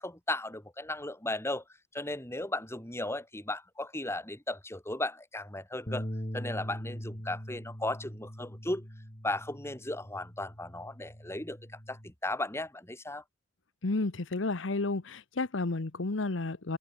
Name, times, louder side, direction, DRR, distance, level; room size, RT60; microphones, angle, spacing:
voice 1, 0.0-1.6 1.9-6.1 6.3-8.9 9.2-11.6 11.9-13.2, left 2 dB, 15° left, 3.8 m, -36 dB
Bass guitar, 5.9-12.1, equal, 30° left, 7.7 m, -42 dB
voice 2, 13.8-16.8, left 3 dB, 75° left, 1.0 m, -31 dB
head